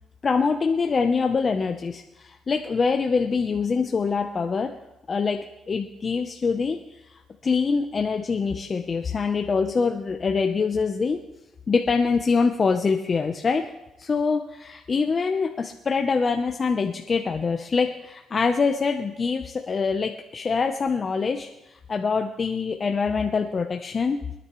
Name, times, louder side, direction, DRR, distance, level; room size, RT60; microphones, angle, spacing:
voice 1, 0.2-4.8 5.1-6.8 7.1-11.2 11.7-13.7 14.0-24.2, left 5 dB, 40° left, 4 dB, 0.8 m, -24 dB
25.0 x 9.9 x 3.2 m, 0.97 s
cardioid pair, 90°, 0 cm